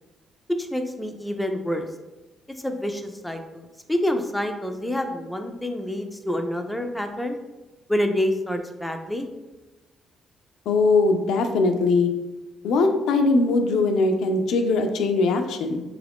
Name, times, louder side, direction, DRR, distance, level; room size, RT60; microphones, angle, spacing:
voice 1, 0.6-1.9 2.6-7.4 7.9-9.3, left 1 dB, 5° left, 5 dB, 0.4 m, -27 dB
voice 2, 10.7-12.1 12.6-15.8, left 3 dB, 80° left, 5 dB, 0.3 m, -21 dB
3.0 x 2.4 x 3.4 m, 1.1 s
cardioid pair, 90°, 0 cm